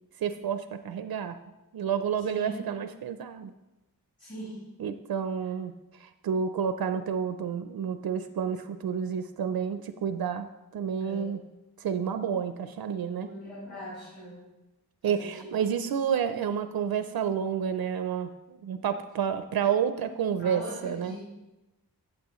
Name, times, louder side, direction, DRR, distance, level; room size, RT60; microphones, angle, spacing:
voice 1, 0.2-1.4 1.7-3.5 4.8-11.4 11.8-13.3 15.0-21.2, right 7 dB, 70° right, 10 dB, 0.5 m, -30 dB
voice 2, 2.2-2.6 4.2-4.6 11.0-11.3 13.1-14.4 15.0-15.5 20.4-21.2, equal, 30° left, -9 dB, 3.7 m, -41 dB
14.0 x 7.8 x 3.0 m, 1.0 s
wide cardioid pair, 180°, 38 cm